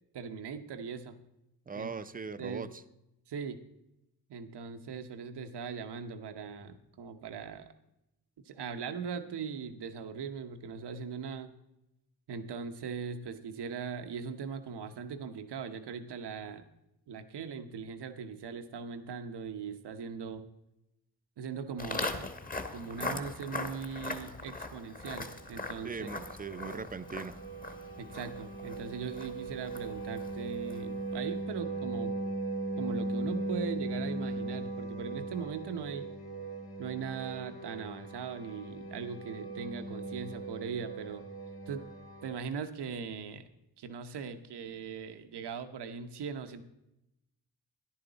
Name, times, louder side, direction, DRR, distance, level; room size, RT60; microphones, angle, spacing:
voice 1, 0.1-1.2 1.7-1.9 2.4-2.7 3.3-3.6 4.3-7.7 8.4-11.5 12.3-16.6 17.1-20.4 21.4-22.3 22.7-26.1 28.0-32.1 32.8-36.1 36.8-41.2 41.7-41.8 42.2-43.5 43.8-46.6, right 6 dB, 85° right, 9 dB, 0.9 m, -40 dB
voice 2, 1.7-2.8 25.8-27.3, right 5 dB, 20° right, 13 dB, 0.5 m, -40 dB
Walk footsteps, 21.8-31.0, left 2 dB, 20° left, 1.0 m, -41 dB
sound 1, 25.0-42.4, right 2 dB, 65° left, 2.0 m, -39 dB
14.0 x 11.0 x 4.0 m, 0.87 s
wide cardioid pair, 120°, 39 cm